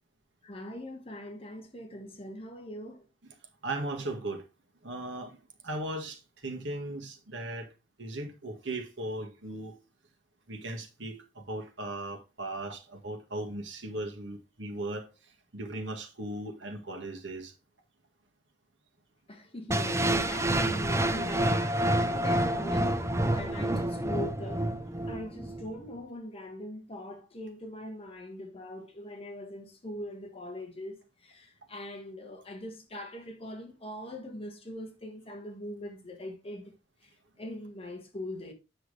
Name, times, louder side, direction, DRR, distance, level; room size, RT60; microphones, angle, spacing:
voice 1, 0.4-3.0 19.3-24.7 25.1-36.7 37.4-38.5, left 1 dB, 30° left, 1.5 m, -42 dB
voice 2, 3.6-4.5 4.8-7.7 8.0-9.8 10.5-15.1 15.5-17.5, right 2 dB, 70° right, 1.7 m, -37 dB
sound 1, 19.7-25.7, right 1 dB, 15° right, 0.7 m, -28 dB
8.0 x 6.1 x 3.2 m
head